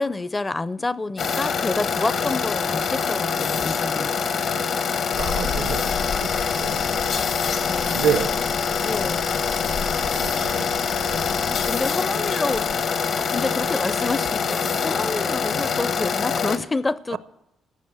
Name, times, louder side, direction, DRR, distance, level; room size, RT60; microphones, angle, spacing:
voice 1, 0.0-4.2 7.6-8.2 8.8-9.4 11.4-12.9 13.2-17.2, left 3 dB, 20° left, 0.5 m, -28 dB
sound 1, 1.2-16.6, left 6 dB, 65° left, 1.0 m, -25 dB
sound 2, 5.1-11.7, left 6 dB, 80° left, 2.5 m, -33 dB
voice 2, 5.2-5.8 6.2-6.3 6.6-6.9 7.9-8.3 10.1-10.7 17.1-17.2, right 9 dB, 85° right, 0.8 m, -27 dB
15.0 x 6.5 x 9.7 m
cardioid pair, 90°, 0 cm